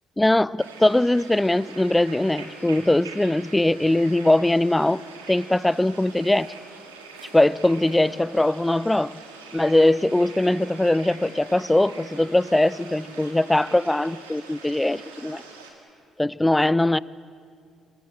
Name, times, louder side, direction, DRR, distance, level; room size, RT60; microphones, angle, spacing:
voice 1, 0.2-5.0 5.3-6.5 7.3-9.2 9.5-15.4 16.2-17.0, left 1 dB, 10° left, 21 dB, 0.5 m, -21 dB
sound 1, 0.6-15.7, right 4 dB, 85° right, 2.4 m, -44 dB
25.5 x 21.5 x 7.9 m, 2.3 s
hypercardioid pair, 50°, 0 cm